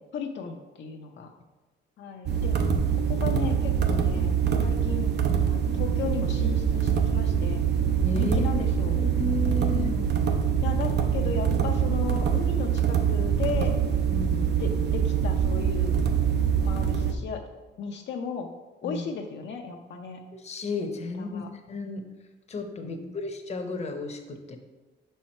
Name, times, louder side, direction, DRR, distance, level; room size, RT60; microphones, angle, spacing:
voice 1, 0.1-1.3 2.0-2.6 3.1-4.3 4.6-5.1 5.5-7.6 8.1-9.0 9.6-10.2 10.6-13.7 14.6-15.9 16.6-17.4 17.8-18.5 18.8-20.2 21.2-21.5 22.8-23.2, left 6 dB, 65° left, 2 dB, 0.6 m, -35 dB
sound 1, 2.3-17.1, right 7 dB, 60° right, 0.7 m, -24 dB
voice 2, 8.0-8.5 8.9-9.9 14.1-14.7 18.8-19.1 20.3-22.0 22.5-24.6, left 3 dB, 35° left, 5 dB, 0.8 m, -33 dB
5.5 x 4.5 x 4.3 m, 1.2 s
cardioid pair, 90°, 20 cm